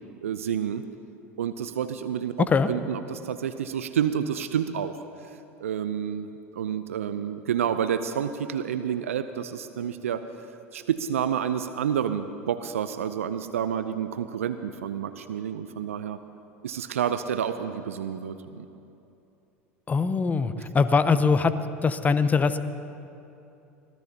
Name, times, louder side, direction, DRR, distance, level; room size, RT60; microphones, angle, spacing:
voice 1, 0.2-0.8 1.4-2.3 2.7-5.0 5.6-10.2 10.7-16.2 16.6-18.7, right 8 dB, 80° right, 11 dB, 0.5 m, -29 dB
voice 2, 19.9-21.5 21.8-22.6, left 5 dB, 20° left, 12 dB, 0.8 m, -22 dB
24.5 x 17.5 x 2.9 m, 2.8 s
hypercardioid pair, 80°, 7 cm